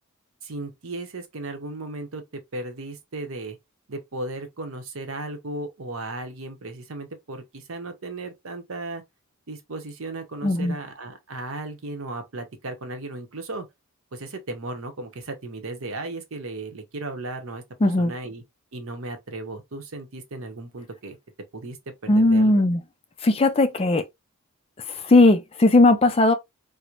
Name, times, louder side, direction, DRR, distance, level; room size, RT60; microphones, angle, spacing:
voice 1, 0.4-3.6 3.9-9.0 9.5-13.7 14.1-18.4 18.7-21.2 21.5-21.8 22.0-22.6, right 2 dB, 65° right, 0.8 m, -35 dB
voice 2, 10.4-10.7 17.8-18.1 22.1-22.8 23.2-24.0 24.9-26.3, left 2 dB, 25° left, 0.4 m, -18 dB
4.4 x 2.1 x 2.4 m
head